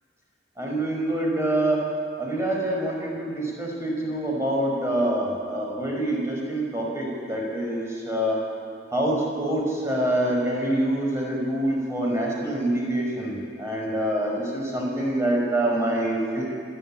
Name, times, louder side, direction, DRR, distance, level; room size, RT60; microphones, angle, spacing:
voice 1, 0.6-1.9 2.2-8.4 8.9-16.4, right 1 dB, 15° right, -2 dB, 5.3 m, -26 dB
29.0 x 12.0 x 8.8 m, 2.3 s
head